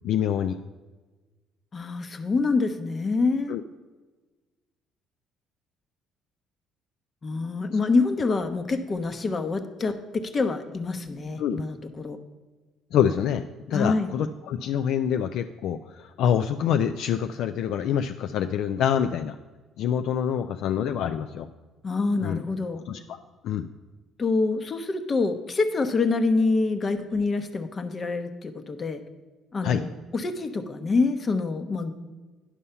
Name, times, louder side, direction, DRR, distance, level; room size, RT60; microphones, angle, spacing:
voice 1, 0.0-0.6 3.5-3.6 11.4-11.6 12.9-19.4 19.8-21.5 22.2-22.4 22.9-23.2 23.4-23.7 29.6-29.8, left 9 dB, 70° left, 8 dB, 0.3 m, -26 dB
voice 2, 1.7-3.6 7.2-12.2 13.7-14.1 21.8-22.8 24.2-29.0 29.5-31.9, left 3 dB, 40° left, 8 dB, 0.9 m, -26 dB
9.9 x 5.5 x 5.6 m, 1.3 s
supercardioid pair, 70°, 0 cm